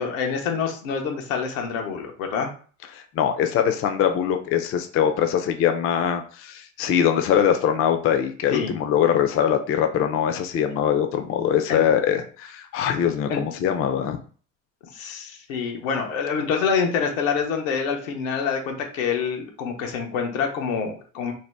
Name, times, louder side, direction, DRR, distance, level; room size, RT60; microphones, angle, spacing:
voice 1, 0.0-2.5 8.5-8.7 11.7-11.8 13.3-13.4 14.9-21.3, left 6 dB, 90° left, 2 dB, 0.8 m, -26 dB
voice 2, 2.9-14.2, left 9 dB, 35° left, 6 dB, 0.4 m, -22 dB
2.7 x 2.1 x 3.2 m, 0.41 s
supercardioid pair, 90°, 38 cm